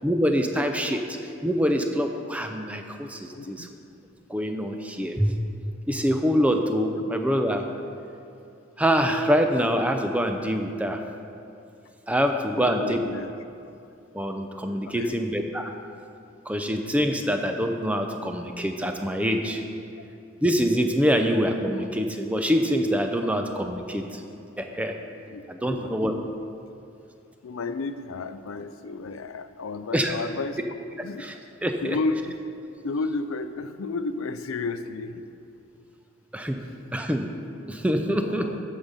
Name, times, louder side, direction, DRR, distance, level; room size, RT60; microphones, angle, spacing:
voice 1, 0.0-1.2 1.4-3.7 4.3-5.3 5.9-7.6 8.8-11.0 12.1-13.0 14.1-15.7 16.5-19.6 20.4-24.2 24.6-24.9 25.5-26.1 29.9-30.1 31.2-31.3 31.6-32.0 36.3-36.6 36.9-37.3 37.7-38.5, equal, 5° right, 5 dB, 0.5 m, -25 dB
voice 2, 3.3-3.7 12.6-13.3 14.9-15.2 25.3-26.3 27.4-30.7 31.0-31.3 31.8-32.4 32.8-35.2 38.0-38.6, left 3 dB, 85° left, 11 dB, 0.5 m, -32 dB
13.5 x 5.6 x 5.2 m, 2.6 s
head